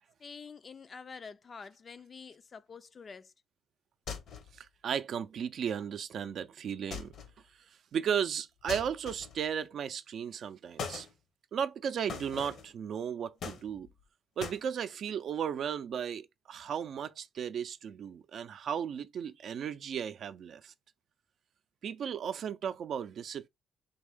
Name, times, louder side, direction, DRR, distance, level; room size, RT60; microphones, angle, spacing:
voice 1, 0.2-3.3 5.7-5.8, left 5 dB, 40° left, 0.4 m, -48 dB
sound 1, 4.1-4.6 6.9-7.4 8.7-9.5 10.8-11.1 12.1-12.7 13.4-14.0 14.4-14.6, left 6 dB, 70° left, 0.9 m, -41 dB
voice 2, 4.5-7.1 7.9-11.1 11.5-13.9 14.4-20.7 21.8-23.5, right 8 dB, 65° right, 0.4 m, -35 dB
4.1 x 2.6 x 3.5 m
cardioid pair, 90°, 0 cm